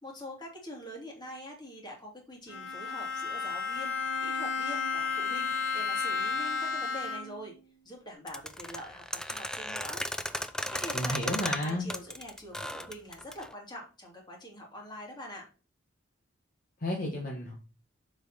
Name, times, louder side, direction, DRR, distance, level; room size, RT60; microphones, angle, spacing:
voice 1, 0.0-7.5 7.8-10.0 10.7-15.5, equal, 20° left, 0 dB, 2.6 m, -44 dB
Bowed string instrument, 2.5-7.5, left 5 dB, 85° left, 1.3 m, -32 dB
sound 1, 8.3-13.5, left 1 dB, 5° left, 0.4 m, -35 dB
voice 2, 10.9-11.9 16.8-17.5, left 1 dB, 45° left, -1 dB, 1.5 m, -32 dB
7.2 x 5.2 x 4.2 m, 0.34 s
head